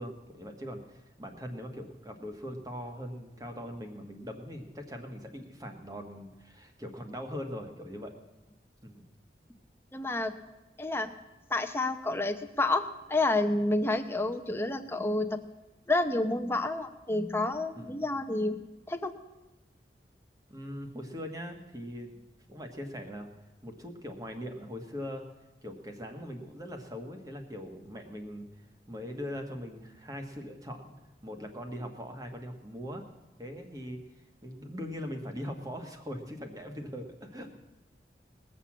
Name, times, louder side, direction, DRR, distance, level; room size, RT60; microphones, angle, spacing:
voice 1, 0.0-8.1 8.8-9.0 17.8-18.0 20.5-22.1 22.5-23.3 23.6-25.2 25.6-30.9 31.2-33.0 33.4-34.0 34.4-37.6, equal, 20° right, 5 dB, 1.5 m, -41 dB
voice 2, 9.9-10.3 10.8-11.1 11.5-12.8 13.1-15.4 15.9-18.6 18.9-19.1, left 2 dB, 15° left, 7 dB, 0.7 m, -29 dB
19.5 x 6.9 x 7.4 m, 1.0 s
head